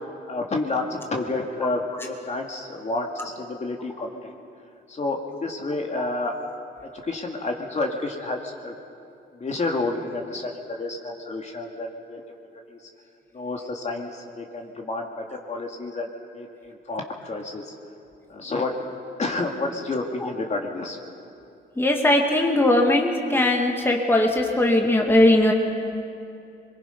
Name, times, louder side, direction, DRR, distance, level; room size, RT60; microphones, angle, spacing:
voice 1, 0.3-4.3 4.9-6.3 7.0-8.7 9.3-12.2 12.7-12.8 13.3-17.7 18.3-18.8 19.2-21.0, left 2 dB, 35° left, 1 dB, 2.2 m, -30 dB
voice 2, 21.8-25.5, left 1 dB, 10° left, 1 dB, 2.1 m, -19 dB
23.5 x 22.5 x 5.4 m, 2.6 s
cardioid pair, 90°, 20 cm